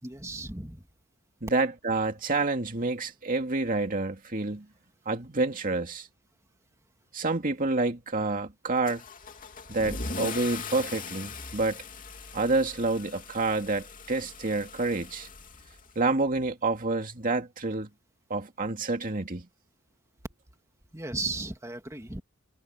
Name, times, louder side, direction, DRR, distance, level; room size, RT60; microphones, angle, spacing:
voice 1, 0.0-0.8 20.9-22.2, right 2 dB, 15° right, 2.5 m, -35 dB
voice 2, 1.4-4.6 5.1-6.1 7.1-9.0 9.7-11.8 12.3-15.3 16.0-17.9 18.3-19.5, right 3 dB, 40° right, 2.3 m, -28 dB
Car / Engine starting / Accelerating revving vroom, 8.9-16.2, left 4 dB, 40° left, 2.8 m, -40 dB
head